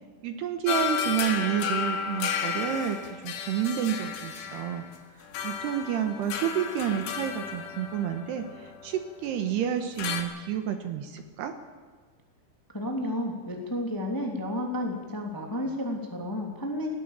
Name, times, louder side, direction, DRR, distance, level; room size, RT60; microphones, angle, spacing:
voice 1, 0.2-3.0 3.2-4.8 5.4-11.5, right 9 dB, 70° right, 7 dB, 2.8 m, -30 dB
sound 1, 0.7-9.3 10.0-10.2, left 7 dB, 90° left, 4.4 m, -33 dB
voice 2, 12.7-17.0, left 1 dB, 10° left, 1 dB, 1.5 m, -31 dB
20.0 x 18.0 x 7.4 m, 1.5 s
omnidirectional pair, 5.5 m